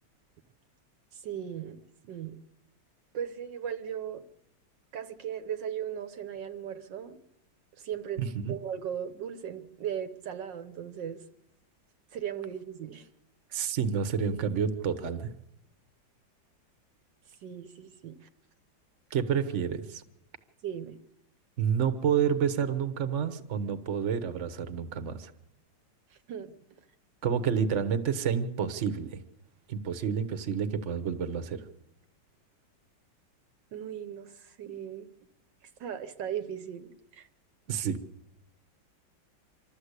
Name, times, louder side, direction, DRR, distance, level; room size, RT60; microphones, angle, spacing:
voice 1, 1.1-2.4 3.1-4.2 4.9-7.2 7.8-8.2 8.5-11.2 12.1-13.1 17.4-18.3 20.6-21.0 26.1-26.5 33.7-35.1 35.8-37.3, right 9 dB, 75° right, 9 dB, 1.6 m, -37 dB
voice 2, 8.2-8.5 13.5-15.3 19.1-20.0 21.6-25.3 27.2-29.2 29.7-31.7 37.7-38.0, right 7 dB, 45° right, 11 dB, 1.4 m, -29 dB
25.5 x 13.0 x 8.2 m, 0.85 s
omnidirectional pair, 2.0 m